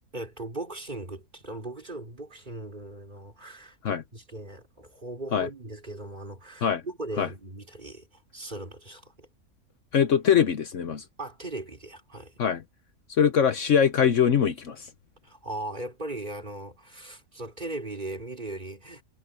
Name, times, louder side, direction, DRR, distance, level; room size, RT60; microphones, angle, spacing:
voice 1, 0.1-9.3 11.2-12.3 15.2-19.0, right 2 dB, 30° right, 3.6 m, -38 dB
voice 2, 9.9-11.0 12.4-12.6 13.1-14.9, left 8 dB, 60° left, 1.2 m, -22 dB
omnidirectional pair, 1.5 m